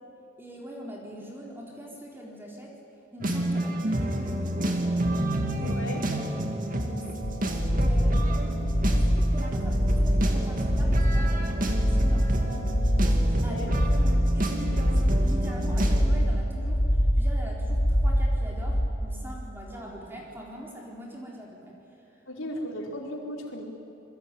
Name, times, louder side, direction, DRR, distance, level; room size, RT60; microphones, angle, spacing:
voice 1, 0.4-2.8 3.1-4.9 5.4-5.8 6.4-7.5 7.8-8.7 9.0-13.6 14.3-21.7, equal, 10° right, -2 dB, 4.1 m, -42 dB
sound 1, 3.2-16.0, right 1 dB, 40° right, 2.6 m, -30 dB
voice 2, 5.6-6.0 13.3-13.7 22.3-23.6, left 1 dB, 75° left, 1 dB, 4.5 m, -36 dB
sound 2, 7.2-18.9, equal, 55° left, 2.9 m, -24 dB
27.5 x 23.0 x 9.3 m, 3.0 s
head